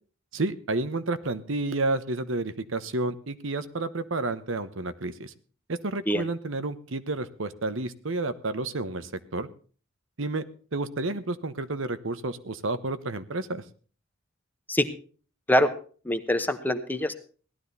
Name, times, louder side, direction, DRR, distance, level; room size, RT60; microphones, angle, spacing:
voice 1, 0.3-5.3 5.7-9.5 10.2-10.4 10.7-13.6, right 2 dB, 70° right, 13 dB, 1.0 m, -30 dB
voice 2, 16.0-17.1, equal, 10° left, 9 dB, 1.0 m, -24 dB
17.0 x 12.0 x 4.1 m, 0.40 s
head